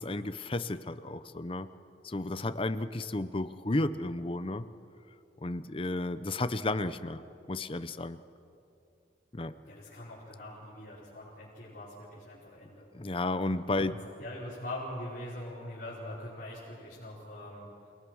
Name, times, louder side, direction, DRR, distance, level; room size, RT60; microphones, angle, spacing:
voice 1, 0.0-1.7 2.0-4.6 5.4-7.2 7.5-8.2 9.3-9.5 12.9-14.0, left 2 dB, 30° left, 11 dB, 0.7 m, -32 dB
voice 2, 9.6-12.9 13.7-17.7, left 1 dB, 50° left, -8 dB, 5.1 m, -43 dB
29.0 x 19.5 x 6.3 m, 2.6 s
head